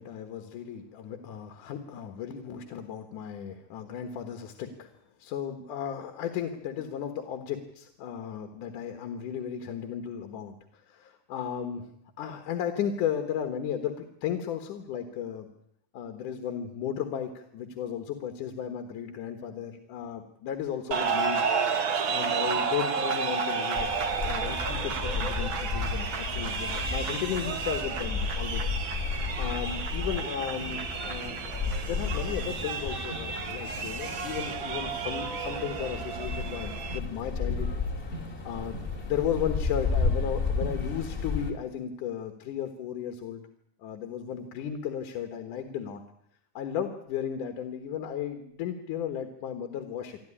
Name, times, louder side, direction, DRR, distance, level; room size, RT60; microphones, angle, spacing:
voice 1, 0.0-4.9 5.2-11.9 12.2-15.5 15.9-21.4 22.0-23.9 24.2-25.5 25.7-25.9 26.2-28.7 29.0-31.6 31.8-37.8 38.1-43.4 43.8-46.0 46.5-50.2, left 9 dB, 70° left, 7 dB, 2.8 m, -35 dB
sound 1, 20.9-37.0, right 5 dB, 50° right, 1.7 m, -32 dB
sound 2, 23.7-41.5, left 4 dB, 20° left, 2.1 m, -33 dB
26.0 x 13.5 x 10.0 m, 0.75 s
omnidirectional pair, 3.9 m